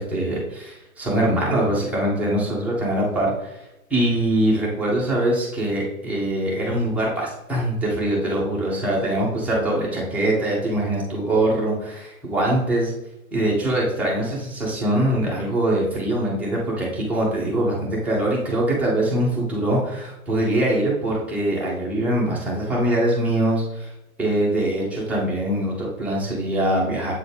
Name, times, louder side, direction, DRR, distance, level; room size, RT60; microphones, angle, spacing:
voice 1, 0.0-3.6 3.9-12.9 13.3-23.9 24.2-27.1, right 1 dB, 5° right, -5 dB, 0.6 m, -23 dB
7.8 x 4.0 x 3.3 m, 0.93 s
figure-of-eight pair, 120°, 43 cm